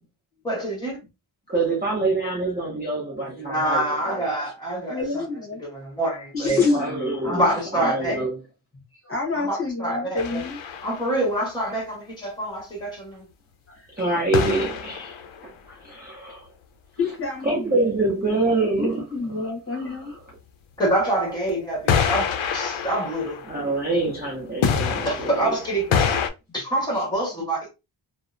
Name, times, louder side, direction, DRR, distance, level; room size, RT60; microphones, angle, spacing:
voice 1, 0.4-1.0 3.4-5.0 5.6-6.6 7.2-8.3 9.3-10.4 10.8-13.2 20.8-23.4 25.0-26.2 26.5-27.7, right 1 dB, 10° left, 1.1 m, -26 dB
voice 2, 1.5-4.2 6.4-7.4 7.8-8.4 14.0-15.1 15.9-16.4 17.5-19.0 23.5-25.5, right 3 dB, 20° right, 0.5 m, -25 dB
voice 3, 4.9-5.6 6.3-7.4 7.8-8.3 9.0-10.6 13.7-13.8 17.0-18.4 18.8-20.2, left 4 dB, 30° left, 0.9 m, -28 dB
sound 1, 10.2-11.2 14.3-15.4 21.9-24.2 24.6-26.3, left 7 dB, 80° left, 0.5 m, -26 dB
2.7 x 2.0 x 2.3 m
wide cardioid pair, 165°, 48 cm